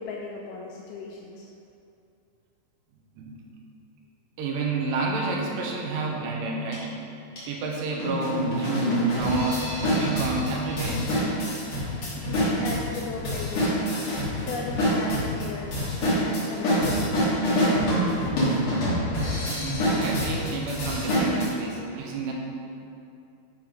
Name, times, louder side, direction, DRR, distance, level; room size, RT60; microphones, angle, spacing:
voice 1, 0.0-1.5 12.1-17.2, left 4 dB, 80° left, -1 dB, 2.2 m, -37 dB
voice 2, 4.4-6.9 7.5-11.1 19.4-22.3, right 3 dB, 80° right, -1 dB, 3.0 m, -30 dB
sound 1, 6.7-6.8 7.4-7.5 8.0-21.5, equal, 40° left, 2.2 m, -26 dB
10.5 x 4.1 x 5.2 m, 2.6 s
omnidirectional pair, 4.9 m